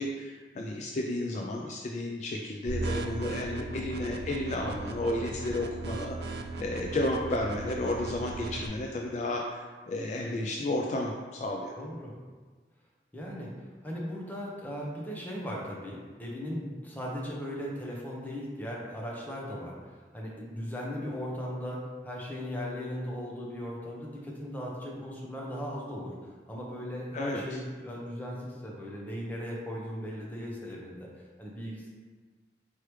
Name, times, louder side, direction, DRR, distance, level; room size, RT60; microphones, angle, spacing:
voice 1, 0.0-11.7 27.1-27.4, left 1 dB, 40° left, 0 dB, 0.3 m, -32 dB
sound 1, 2.7-8.7, right 3 dB, 65° right, 0.4 m, -37 dB
voice 2, 11.8-12.1 13.1-13.5 13.8-31.1 31.4-31.9, equal, 10° left, -3 dB, 0.7 m, -38 dB
4.6 x 3.2 x 3.1 m, 1.4 s
head